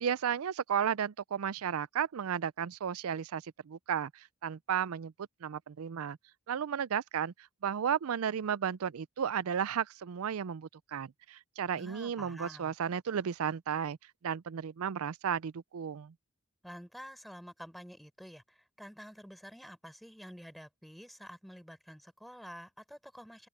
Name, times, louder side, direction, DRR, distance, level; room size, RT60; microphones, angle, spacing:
voice 1, 0.0-6.2 6.5-7.3 7.6-14.0 14.2-16.1, right 8 dB, 75° right, 0.4 m, -34 dB
voice 2, 11.7-12.7 16.6-23.5, equal, ahead, 4.3 m, -49 dB
open air
head